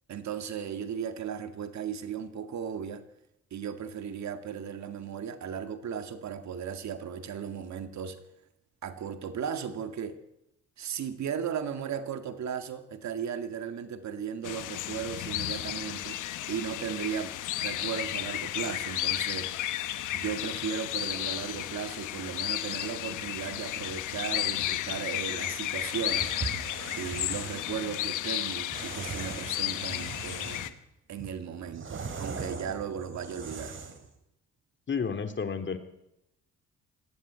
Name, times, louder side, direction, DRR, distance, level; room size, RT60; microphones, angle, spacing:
voice 1, 0.1-3.0 3.5-8.2 8.8-10.2 10.8-16.2 16.5-19.5 20.1-26.3 27.0-30.7 31.1-33.8, right 7 dB, 65° right, 9 dB, 2.0 m, -36 dB
sound 1, 14.4-30.7, left 13 dB, 85° left, 1.2 m, -33 dB
sound 2, 25.8-27.6 28.7-30.8 31.2-34.1, right 5 dB, 40° right, 3.4 m, -40 dB
voice 2, 34.9-35.8, left 6 dB, 40° left, 7 dB, 2.4 m, -31 dB
19.5 x 15.0 x 9.4 m, 0.85 s
cardioid pair, 90°, 30 cm